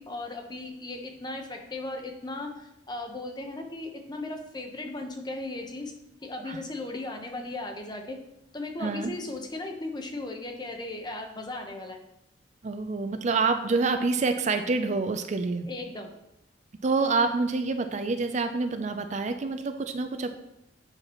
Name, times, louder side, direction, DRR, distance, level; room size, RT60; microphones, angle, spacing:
voice 1, 0.0-5.9 6.2-8.2 8.5-12.0 15.7-16.1, left 2 dB, 25° left, 3 dB, 0.8 m, -37 dB
voice 2, 8.8-9.1 12.6-15.7 16.8-20.3, right 3 dB, 40° right, 8 dB, 0.4 m, -27 dB
8.8 x 5.9 x 3.0 m, 0.85 s
head